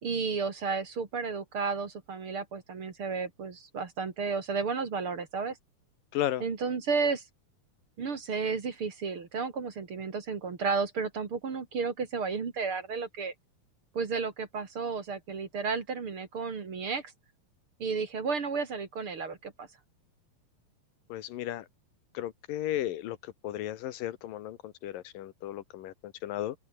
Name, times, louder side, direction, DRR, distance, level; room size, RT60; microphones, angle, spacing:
voice 1, 0.0-5.6 6.4-7.2 8.0-13.3 13.9-17.1 17.8-19.7, right 5 dB, 40° right, 3.0 m, -32 dB
voice 2, 6.1-6.4 21.1-21.7 22.1-23.2 23.4-26.6, left 13 dB, 85° left, 3.0 m, -34 dB
open air
omnidirectional pair, 3.8 m